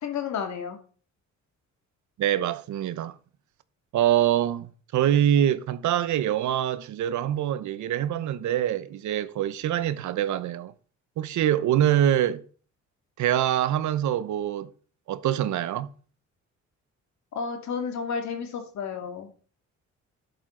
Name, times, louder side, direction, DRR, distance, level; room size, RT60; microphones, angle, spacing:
voice 1, 0.0-0.8 17.4-19.3, left 6 dB, 65° left, 2.2 m, -31 dB
voice 2, 2.2-3.1 3.9-10.7 11.2-12.4 13.2-14.7 15.1-15.9, right 11 dB, 75° right, 0.8 m, -24 dB
11.0 x 8.1 x 3.8 m
cardioid pair, 90°, 30 cm